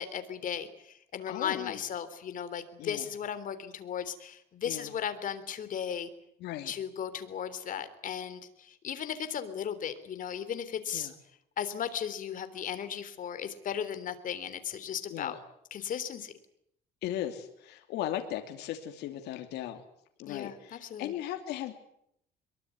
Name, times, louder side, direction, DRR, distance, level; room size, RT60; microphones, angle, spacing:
voice 1, 0.0-6.1 6.7-11.1 11.6-15.4 15.7-16.3 20.3-21.1, left 8 dB, 50° left, 11 dB, 3.5 m, -36 dB
voice 2, 1.3-1.8 2.8-3.1 4.7-4.9 6.4-6.7 10.9-11.1 15.1-15.4 17.0-19.8 20.2-21.7, left 12 dB, 80° left, 5 dB, 3.0 m, -37 dB
24.0 x 22.5 x 9.6 m, 0.73 s
cardioid pair, 110°, 17 cm